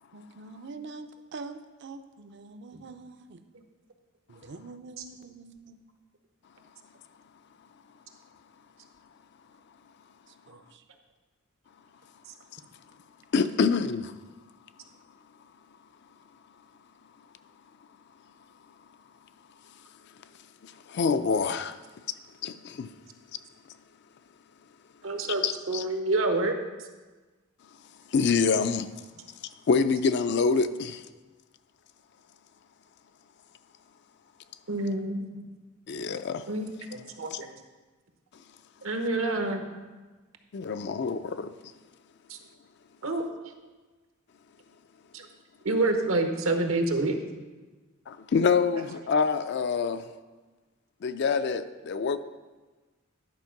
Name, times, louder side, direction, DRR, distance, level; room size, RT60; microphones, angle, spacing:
voice 1, 0.1-3.4 4.3-5.8 10.5-10.8, right 3 dB, 60° right, 0.6 m, -44 dB
voice 2, 13.3-14.1 20.6-21.8 22.4-22.9 25.4-25.8 28.1-28.9 29.4-31.1 35.9-36.5 37.3-37.4 38.3-38.4 40.5-41.5 48.1-50.1 51.0-52.2, left 5 dB, 55° left, 0.4 m, -26 dB
voice 3, 25.0-26.5 34.7-35.2 36.5-37.5 38.8-39.7 42.3-42.4 43.0-43.3 45.1-45.3 45.6-47.2, right 2 dB, 80° right, 1.0 m, -28 dB
10.5 x 4.4 x 5.8 m
head